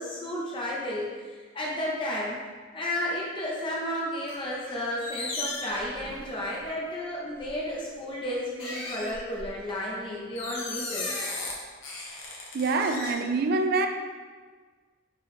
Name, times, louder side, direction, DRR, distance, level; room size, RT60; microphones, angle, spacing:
voice 1, 0.0-2.4 2.7-11.1, left 1 dB, 25° left, -4 dB, 0.5 m, -32 dB
sound 1, 4.3-4.7 5.0-6.5 7.4-7.6 8.6-9.7 10.4-11.5 11.8-13.1, left 2 dB, 85° left, 0.9 m, -36 dB
voice 2, 12.5-13.9, right 3 dB, 50° right, 6 dB, 0.3 m, -25 dB
3.7 x 2.8 x 3.5 m, 1.5 s
head